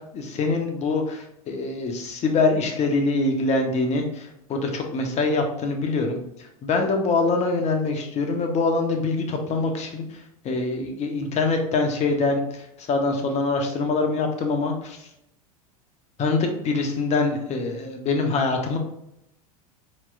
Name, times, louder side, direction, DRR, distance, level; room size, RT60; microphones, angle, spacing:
voice 1, 0.1-6.2 6.6-10.1 10.4-15.0 16.2-18.8, left 3 dB, 35° left, 4 dB, 1.1 m, -24 dB
4.4 x 4.3 x 2.5 m, 0.80 s
hypercardioid pair, 95°, 19 cm